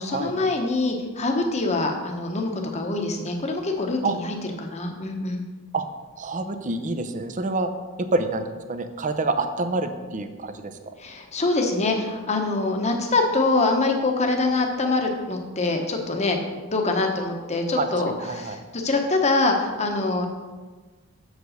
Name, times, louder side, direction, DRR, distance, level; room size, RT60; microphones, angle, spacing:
voice 1, 0.0-4.3 4.6-5.4 11.0-20.3, left 2 dB, 30° left, 3 dB, 0.9 m, -24 dB
voice 2, 6.2-7.7 8.0-10.9 17.7-18.6, right 3 dB, 35° right, 8 dB, 0.6 m, -27 dB
6.8 x 4.9 x 6.4 m, 1.3 s
head